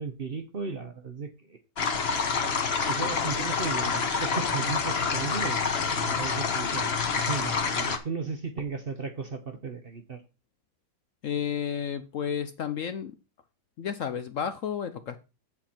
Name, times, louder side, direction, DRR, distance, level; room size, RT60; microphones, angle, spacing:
voice 1, 0.0-1.6 2.3-10.2, right 5 dB, 45° right, 0.8 m, -36 dB
sound 1, 1.8-8.0, left 5 dB, 40° left, 1.1 m, -27 dB
voice 2, 11.2-13.1 13.8-15.2, left 8 dB, 65° left, 0.8 m, -31 dB
7.8 x 7.7 x 4.3 m
omnidirectional pair, 1.8 m